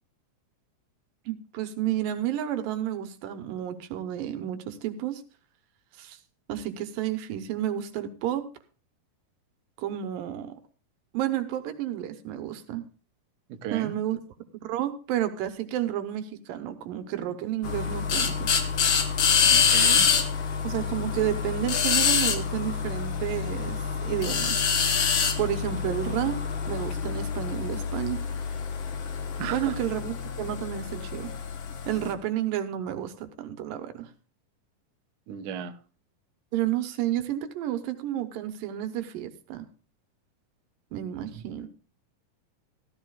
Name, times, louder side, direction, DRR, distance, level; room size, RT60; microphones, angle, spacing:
voice 1, 1.3-5.2 6.0-6.2 6.5-8.4 9.8-10.5 11.1-12.9 13.7-14.2 14.6-18.5 20.6-24.6 25.4-26.4 26.7-28.2 29.5-31.3 31.9-34.1 36.5-39.7 40.9-41.7, right 11 dB, 90° right, 2.6 m, -31 dB
voice 2, 13.5-13.9 19.5-20.1 29.4-29.8 35.3-35.7 41.3-41.4, right 9 dB, 75° right, 2.2 m, -35 dB
sound 1, 17.6-32.1, left 6 dB, 70° left, 1.1 m, -26 dB
15.0 x 13.5 x 2.3 m
omnidirectional pair, 3.8 m